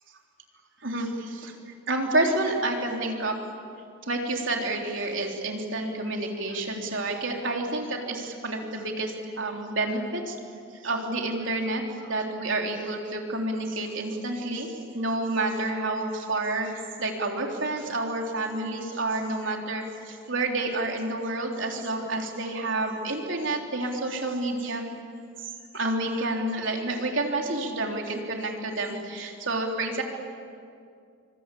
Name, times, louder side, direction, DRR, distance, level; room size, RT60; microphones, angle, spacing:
voice 1, 0.8-1.5 1.9-3.4 4.1-10.4 10.8-24.8 25.4-30.0, right 2 dB, 65° right, 1 dB, 3.7 m, -29 dB
27.5 x 25.0 x 8.5 m, 2.3 s
head